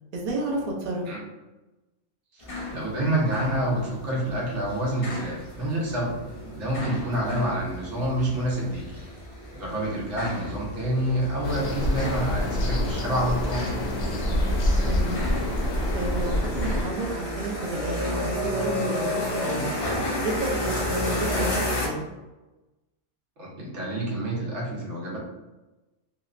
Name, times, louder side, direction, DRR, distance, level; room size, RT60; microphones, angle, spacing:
voice 1, 0.1-1.2 7.3-7.5 14.8-15.3 15.9-19.8 20.2-20.8 21.1-22.0, right 2 dB, 50° right, -3 dB, 0.5 m, -31 dB
sound 1, 2.4-21.9, left 1 dB, 45° left, 0.4 m, -32 dB
voice 2, 2.7-6.1 6.6-8.8 9.5-13.6 23.4-25.2, right 1 dB, 80° right, -5 dB, 1.2 m, -27 dB
sound 2, 11.4-16.8, left 1 dB, 70° left, 0.8 m, -26 dB
2.9 x 2.1 x 2.4 m, 1.1 s
omnidirectional pair, 1.2 m